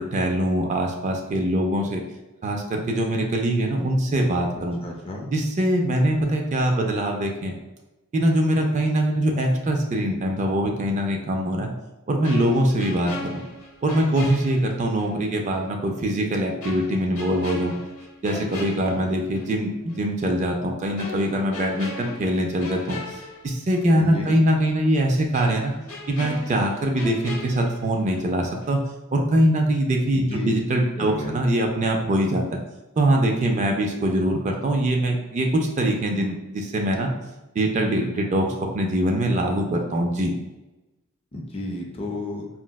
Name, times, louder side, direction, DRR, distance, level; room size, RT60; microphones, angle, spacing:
voice 1, 0.0-2.0 2.4-4.8 5.3-7.6 8.1-11.7 12.1-13.4 13.8-17.8 18.2-25.7 26.1-28.8 29.1-32.6 33.0-37.1 37.6-40.3, right 1 dB, 35° right, 2 dB, 0.3 m, -23 dB
voice 2, 4.8-5.3 24.0-24.4 30.1-30.5 31.0-31.4 41.3-42.5, left 2 dB, 25° left, 0 dB, 0.4 m, -32 dB
sound 1, 12.2-15.2 15.5-15.7 16.6-19.6 19.9-20.1 21.0-24.0 24.3-24.4 25.3-28.4 28.6-28.9, left 2 dB, 85° left, 0.7 m, -38 dB
4.3 x 2.0 x 2.2 m, 1.0 s
head